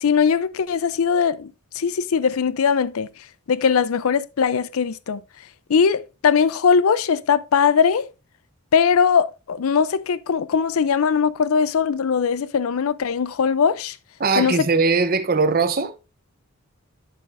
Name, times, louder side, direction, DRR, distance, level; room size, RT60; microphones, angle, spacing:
voice 1, 0.0-3.1 3.5-5.2 5.7-8.1 8.7-14.0 14.4-14.6, left 6 dB, 80° left, 0.5 m, -20 dB
voice 2, 14.2-15.9, right 4 dB, 40° right, 0.7 m, -20 dB
11.0 x 7.4 x 2.5 m
head